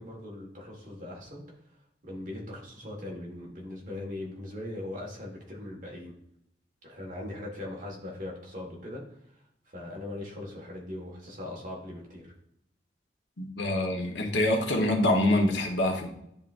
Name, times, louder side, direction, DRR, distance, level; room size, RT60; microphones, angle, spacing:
voice 1, 0.0-1.6 2.0-6.1 6.8-9.0 9.7-12.3, left 1 dB, 45° right, -2 dB, 1.7 m, -40 dB
voice 2, 13.4-16.1, left 1 dB, 90° left, 2 dB, 1.2 m, -25 dB
10.5 x 3.7 x 2.6 m, 0.74 s
head